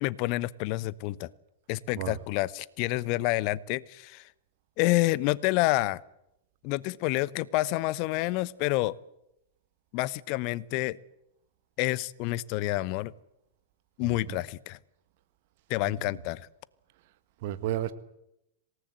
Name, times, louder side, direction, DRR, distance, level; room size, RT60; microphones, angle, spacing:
voice 1, 0.0-1.3 1.7-4.3 4.8-6.0 6.6-8.9 9.9-11.0 11.8-13.1 14.0-14.8 15.7-16.5, left 19 dB, 45° left, 0.9 m, -28 dB
voice 2, 14.0-14.4 15.8-16.2 17.4-17.9, right 13 dB, 50° right, 1.7 m, -34 dB
26.5 x 18.0 x 7.8 m
figure-of-eight pair, 90°, 0 cm